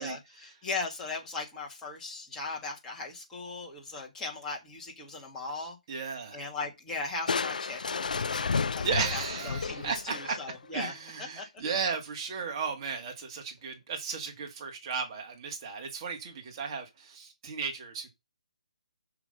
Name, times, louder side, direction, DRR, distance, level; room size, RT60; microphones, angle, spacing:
voice 1, 0.0-5.8 6.3-10.9 11.2-11.5, left 3 dB, 10° left, 2.0 m, -38 dB
voice 2, 5.9-6.4 8.8-10.1 10.7-18.1, right 5 dB, 30° right, 2.3 m, -35 dB
Crushing, 7.3-10.7, left 5 dB, 70° left, 0.4 m, -32 dB
6.1 x 5.8 x 5.5 m
hypercardioid pair, 155°, 4 cm